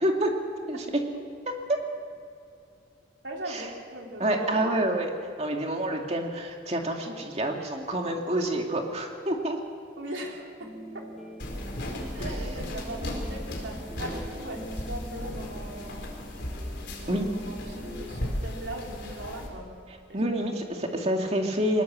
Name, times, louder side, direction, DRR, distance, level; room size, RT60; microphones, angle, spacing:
voice 1, 3.2-4.7 10.0-10.7 12.1-16.1 17.0-19.7 20.1-20.5, right 1 dB, 70° right, 0 dB, 3.9 m, -39 dB
voice 2, 4.2-5.1 5.4-9.6 12.2-12.3 17.1-17.3 20.1-21.8, right 1 dB, 30° right, 2 dB, 2.3 m, -28 dB
sound 1, 10.6-18.0, equal, ahead, 3.0 m, -43 dB
sound 2, 11.4-19.5, left 1 dB, 65° left, 4.2 m, -36 dB
21.0 x 20.0 x 7.6 m, 2.4 s
head